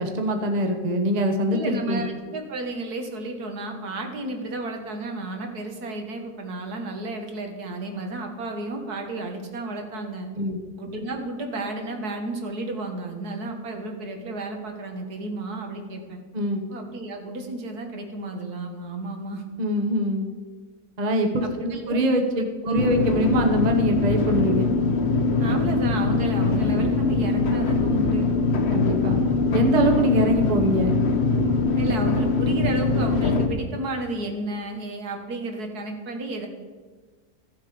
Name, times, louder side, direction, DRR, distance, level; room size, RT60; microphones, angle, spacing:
voice 1, 0.0-2.0 10.3-10.6 16.3-16.6 19.6-20.3 21.0-24.7 28.7-29.2 29.5-31.0, right 1 dB, 30° right, 4 dB, 0.9 m, -23 dB
voice 2, 1.5-10.3 10.7-16.2 16.7-19.4 21.4-22.0 22.7-22.8 25.4-28.3 31.8-36.5, right 2 dB, 70° right, 3 dB, 1.9 m, -32 dB
sound 1, 22.7-33.5, left 3 dB, 50° left, 1.0 m, -22 dB
14.5 x 7.3 x 5.0 m, 1.4 s
omnidirectional pair, 1.7 m